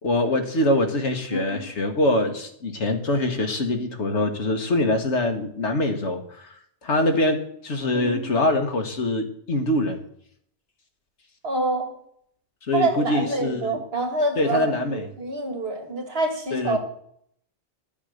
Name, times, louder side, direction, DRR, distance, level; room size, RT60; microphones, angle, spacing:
voice 1, 0.0-6.5 6.8-10.0 12.7-13.8 14.4-15.0 16.5-16.8, left 1 dB, 75° left, 6 dB, 1.8 m, -24 dB
voice 2, 1.3-1.6 7.9-8.3 11.4-11.9 12.7-16.8, right 2 dB, 55° right, 4 dB, 2.3 m, -27 dB
12.0 x 7.4 x 6.5 m, 0.68 s
omnidirectional pair, 1.2 m